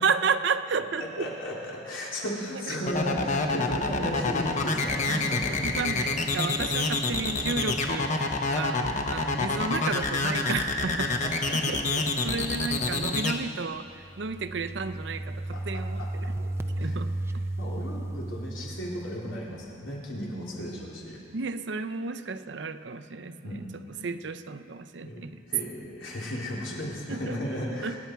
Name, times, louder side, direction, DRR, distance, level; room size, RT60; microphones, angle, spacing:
voice 1, 0.0-1.3 2.7-2.8 4.0-4.1 5.6-11.2 11.5-17.5 21.3-25.4 27.1-27.4 27.8-28.0, right 4 dB, 65° right, 11 dB, 0.6 m, -32 dB
voice 2, 1.0-5.7 11.2-11.6 12.0-12.1 12.8-12.9 15.5-16.1 16.8-17.0 17.6-21.2 23.4-23.8 25.0-28.0, equal, 90° left, -4 dB, 3.7 m, -35 dB
sound 1, 2.9-13.3, left 3 dB, 40° left, 1.0 m, -27 dB
sound 2, 13.9-19.6, right 1 dB, 15° right, 0.4 m, -34 dB
26.0 x 10.5 x 4.6 m, 2.5 s
head